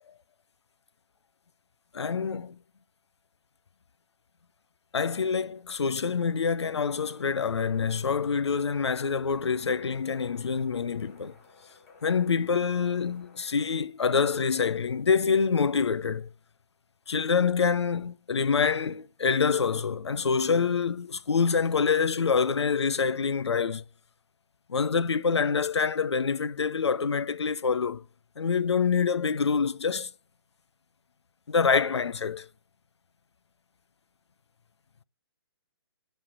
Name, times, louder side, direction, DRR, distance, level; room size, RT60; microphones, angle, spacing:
voice 1, 1.9-2.6 4.9-11.3 12.0-16.3 17.1-23.8 24.7-28.0 28.4-30.1 31.5-32.5, left 5 dB, 80° left, 0.5 m, -26 dB
sound 1, 6.9-13.8, left 4 dB, 35° left, 3.7 m, -56 dB
8.5 x 3.3 x 5.3 m
figure-of-eight pair, 140°, 14 cm